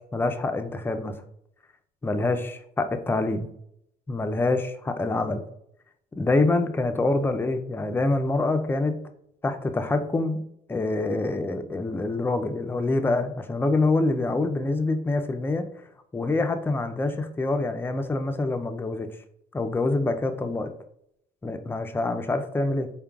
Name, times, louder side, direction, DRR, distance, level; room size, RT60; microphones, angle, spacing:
voice 1, 0.1-1.2 2.0-3.5 4.1-5.4 6.2-9.0 9.4-10.4 10.7-15.7 16.1-19.1 19.5-20.7 21.4-22.9, left 2 dB, 15° left, 7 dB, 0.4 m, -26 dB
3.9 x 3.6 x 2.3 m, 0.73 s
cardioid pair, 110°, 17 cm